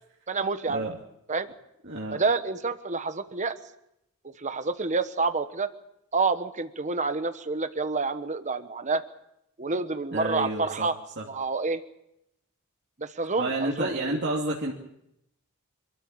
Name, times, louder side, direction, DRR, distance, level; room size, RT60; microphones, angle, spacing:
voice 1, 0.3-0.8 1.3-1.5 2.1-3.6 4.4-5.7 6.1-9.0 9.6-11.0 11.2-11.8 13.0-14.2, right 4 dB, 35° right, 10 dB, 1.1 m, -28 dB
voice 2, 1.8-2.2 10.1-10.9 11.2-11.3 13.4-14.7, right 2 dB, 55° right, -2 dB, 2.6 m, -30 dB
26.0 x 13.5 x 9.0 m, 0.81 s
head